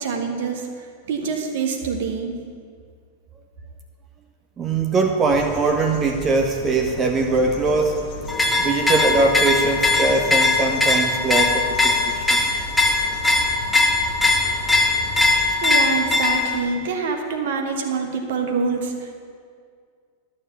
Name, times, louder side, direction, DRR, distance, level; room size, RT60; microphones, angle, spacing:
voice 1, 0.0-2.3 15.6-19.2, right 5 dB, 55° right, 3 dB, 1.4 m, -26 dB
voice 2, 4.6-8.1 8.6-12.4, right 3 dB, 25° right, 3 dB, 0.7 m, -21 dB
sound 1, 5.3-15.5, left 2 dB, 40° left, 1.4 m, -36 dB
sound 2, 8.3-16.6, left 3 dB, 5° left, 1.1 m, -20 dB
12.0 x 6.4 x 6.9 m, 2.1 s
figure-of-eight pair, 90°, 0 cm